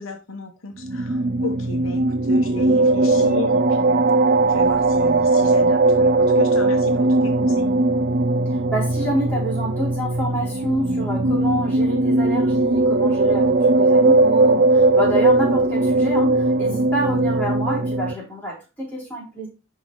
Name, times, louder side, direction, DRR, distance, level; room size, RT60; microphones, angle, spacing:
voice 1, 0.0-2.0 2.3-7.7, left 3 dB, 80° left, 1.0 m, -35 dB
ab merge atmos, 0.8-18.1, right 2 dB, 45° right, 0.4 m, -19 dB
voice 2, 8.5-19.5, right 1 dB, 10° left, 3.3 m, -28 dB
10.0 x 3.8 x 3.0 m
head